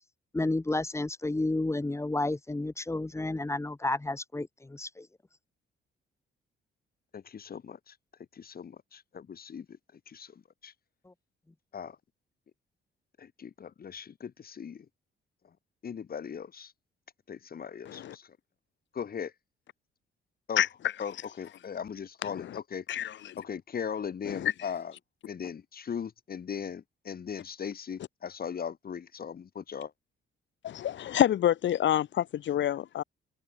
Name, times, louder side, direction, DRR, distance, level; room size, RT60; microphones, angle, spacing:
voice 1, 0.3-5.1 11.1-11.2, left 2 dB, 15° left, 2.6 m, -31 dB
voice 2, 7.1-8.0 8.3-10.7 11.7-12.0 13.2-14.9 15.8-16.7 17.3-18.4 18.9-19.3 20.5-20.6 21.0-22.8 23.4-24.9 25.3-29.9, left 7 dB, 50° left, 4.9 m, -39 dB
voice 3, 17.9-18.2 20.6-20.7 22.4-22.6 22.9-23.4 24.3-24.5 30.6-33.0, left 11 dB, 70° left, 2.1 m, -27 dB
cardioid pair, 90°, 20 cm